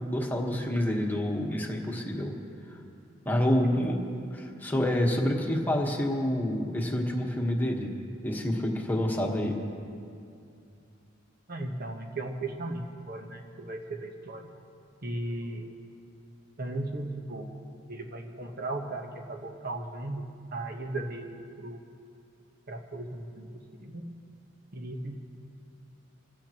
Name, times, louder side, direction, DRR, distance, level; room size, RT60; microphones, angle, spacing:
voice 1, 0.0-2.3 3.2-4.0 4.3-7.9 8.2-9.6, left 1 dB, 10° left, 0 dB, 1.3 m, -28 dB
voice 2, 11.5-14.5 15.0-15.8 16.6-17.5 17.9-20.3 20.5-21.8 22.7-23.5 23.8-24.1 24.7-25.1, right 2 dB, 50° right, 2 dB, 1.2 m, -36 dB
25.0 x 15.5 x 3.0 m, 2.5 s
head